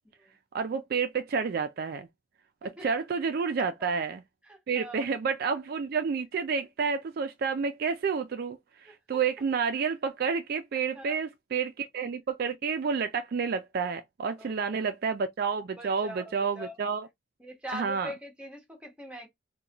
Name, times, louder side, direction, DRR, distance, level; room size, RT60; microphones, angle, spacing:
voice 1, 0.5-2.1 2.6-4.2 4.7-17.1 17.7-18.1, right 5 dB, 50° right, 0.3 m, -30 dB
voice 2, 4.5-5.1 8.8-8.9 10.9-11.2 14.4-14.9 15.8-16.8 17.4-19.3, equal, 5° right, 1.0 m, -43 dB
3.9 x 2.2 x 2.8 m
head